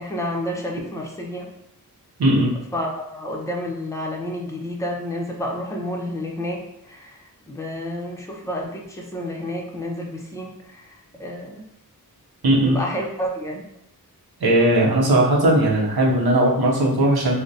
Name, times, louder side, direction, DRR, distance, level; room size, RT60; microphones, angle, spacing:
voice 1, 0.0-1.5 2.7-11.6 12.6-13.7, left 1 dB, 10° left, -1 dB, 0.6 m, -30 dB
voice 2, 2.2-2.5 12.4-12.8 14.4-17.4, right 1 dB, 80° right, -4 dB, 0.7 m, -18 dB
3.7 x 2.1 x 2.6 m, 0.78 s
wide cardioid pair, 45°, 37 cm